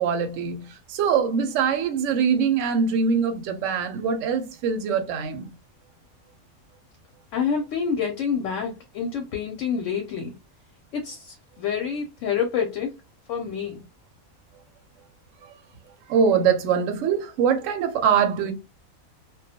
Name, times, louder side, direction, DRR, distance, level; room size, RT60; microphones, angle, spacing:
voice 1, 0.0-5.5 16.1-18.5, right 6 dB, 70° right, 0.9 m, -23 dB
voice 2, 7.3-10.3 10.9-12.9 13.3-13.8, left 7 dB, 70° left, 0.8 m, -27 dB
2.3 x 2.1 x 2.7 m
omnidirectional pair, 1.5 m